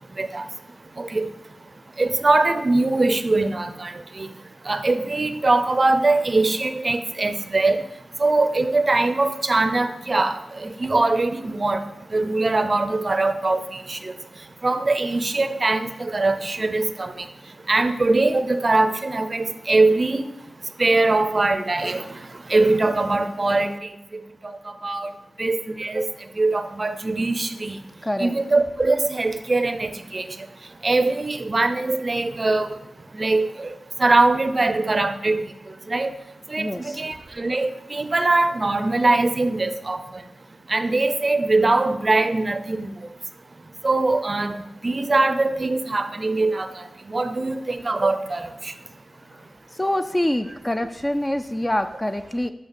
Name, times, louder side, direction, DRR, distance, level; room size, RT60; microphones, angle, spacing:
voice 1, 1.0-1.3 2.0-3.9 4.2-4.3 4.7-7.8 8.2-11.8 12.1-13.6 13.9-14.1 14.6-17.1 17.7-20.2 20.8-22.0 22.5-23.7 24.8-25.1 25.4-26.1 26.4-27.8 28.2-30.2 30.8-32.7 33.2-33.7 34.0-35.4 35.9-36.1 36.5-40.0 40.7-42.9 43.8-46.7 47.1-48.4, right 2 dB, 35° right, 10 dB, 0.6 m, -21 dB
voice 2, 36.6-37.0 49.8-52.5, left 1 dB, 15° left, 8 dB, 0.4 m, -25 dB
6.3 x 5.7 x 6.9 m, 0.90 s
wide cardioid pair, 100°, 0 cm